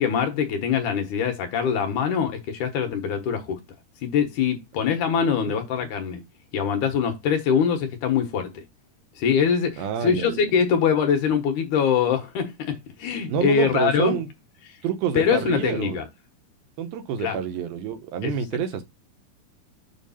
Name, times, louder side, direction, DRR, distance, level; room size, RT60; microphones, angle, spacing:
voice 1, 0.0-3.6 4.0-6.2 6.5-8.6 9.2-14.2 15.1-16.0 17.2-17.4 18.2-18.3, left 7 dB, 65° left, 2.4 m, -23 dB
voice 2, 9.8-10.4 13.3-14.3 14.8-16.0 16.8-18.8, right 8 dB, 85° right, 2.9 m, -28 dB
7.0 x 3.2 x 5.6 m
omnidirectional pair, 4.1 m